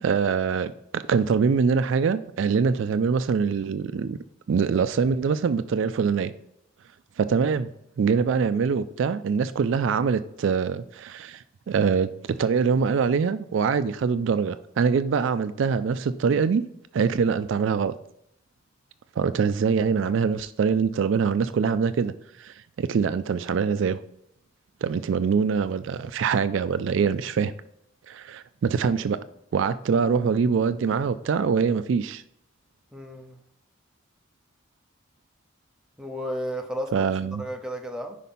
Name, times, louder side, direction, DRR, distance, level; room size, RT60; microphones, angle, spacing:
voice 1, 0.0-4.2 4.5-6.3 7.2-7.7 8.0-16.6 16.9-17.9 19.2-22.1 22.4-24.0 24.8-27.5 28.1-29.2 29.5-32.2 36.9-37.4, right 6 dB, 65° right, 13 dB, 0.3 m, -24 dB
voice 2, 32.9-33.4 36.0-37.1 37.4-38.2, equal, 5° right, 2 dB, 0.7 m, -33 dB
5.4 x 5.0 x 4.2 m, 0.74 s
head